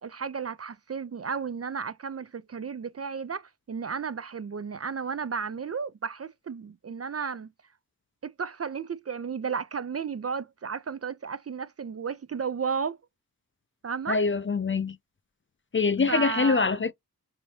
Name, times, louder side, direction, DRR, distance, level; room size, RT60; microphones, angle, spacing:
voice 1, 0.0-7.5 8.2-13.0 13.8-14.2 16.1-16.8, right 6 dB, 40° right, 0.4 m, -33 dB
voice 2, 14.1-15.0 15.7-16.9, left 4 dB, 35° left, 0.4 m, -24 dB
4.8 x 2.7 x 2.7 m
wide cardioid pair, 65°, 39 cm